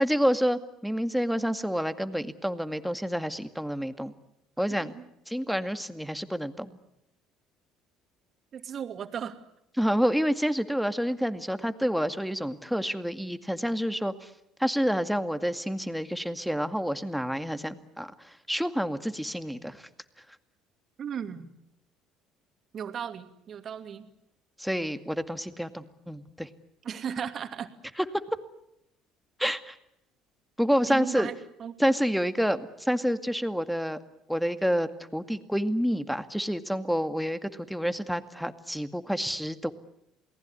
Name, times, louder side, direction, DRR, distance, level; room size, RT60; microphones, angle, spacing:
voice 1, 0.0-4.1 4.6-4.9 5.3-6.8 9.8-14.3 14.6-19.9 24.6-26.5 28.0-28.1 29.4-29.8 30.6-31.3 31.8-34.0 34.3-39.7, equal, ahead, 9 dB, 2.1 m, -28 dB
voice 2, 4.7-5.0 8.5-9.4 21.0-21.5 22.7-24.1 26.8-27.7 29.4-29.5 30.9-31.7, right 8 dB, 50° right, 8 dB, 2.7 m, -36 dB
28.5 x 19.5 x 9.8 m, 0.81 s
hypercardioid pair, 65°, 0 cm